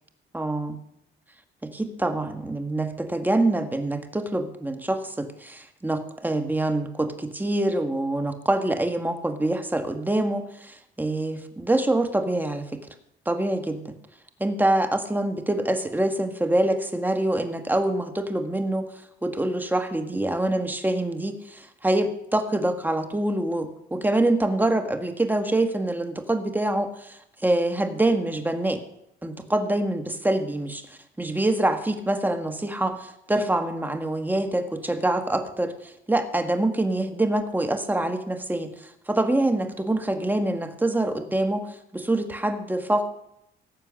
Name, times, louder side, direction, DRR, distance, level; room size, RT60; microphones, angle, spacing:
voice 1, 0.3-0.8 1.6-12.8 13.2-14.0 14.4-18.9 19.2-28.8 29.2-43.1, right 1 dB, 10° right, 6 dB, 1.6 m, -25 dB
17.5 x 7.4 x 6.4 m, 0.80 s
cardioid pair, 90°, 20 cm